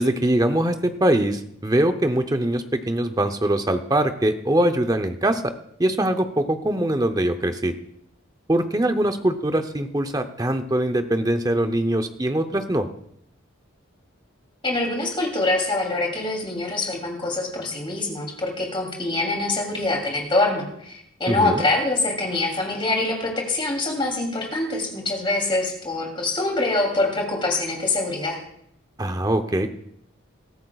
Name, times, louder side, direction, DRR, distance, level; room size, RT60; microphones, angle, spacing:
voice 1, 0.0-5.5 5.8-7.7 8.5-12.9 21.3-21.7 29.0-29.7, right 1 dB, 20° right, 7 dB, 0.7 m, -22 dB
voice 2, 14.6-28.4, left 2 dB, 25° left, 0 dB, 3.0 m, -24 dB
21.5 x 13.5 x 2.4 m, 0.71 s
head